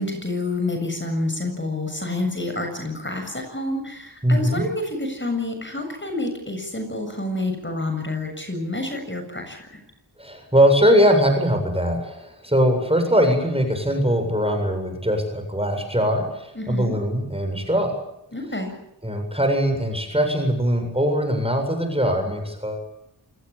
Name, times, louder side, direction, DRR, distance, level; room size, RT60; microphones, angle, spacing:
voice 1, 0.0-9.8 16.5-17.0 18.3-18.7, left 2 dB, 25° left, 4 dB, 7.6 m, -28 dB
voice 2, 4.2-4.7 10.2-17.9 19.0-22.8, equal, 15° right, 5 dB, 7.6 m, -21 dB
28.0 x 19.5 x 8.8 m, 0.81 s
wide cardioid pair, 65°, 42 cm